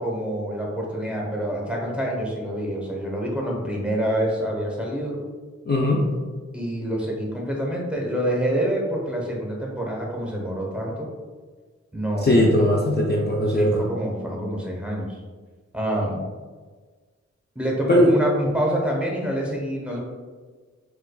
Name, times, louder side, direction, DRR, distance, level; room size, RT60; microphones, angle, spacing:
voice 1, 0.0-5.2 6.5-11.1 11.9-12.8 13.5-15.1 15.7-16.3 17.5-20.0, equal, 5° right, -2 dB, 0.9 m, -27 dB
voice 2, 5.7-6.0 12.2-13.8 17.9-18.1, left 1 dB, 35° left, -3 dB, 0.5 m, -19 dB
4.3 x 2.3 x 2.3 m, 1.4 s
wide cardioid pair, 50°, 30 cm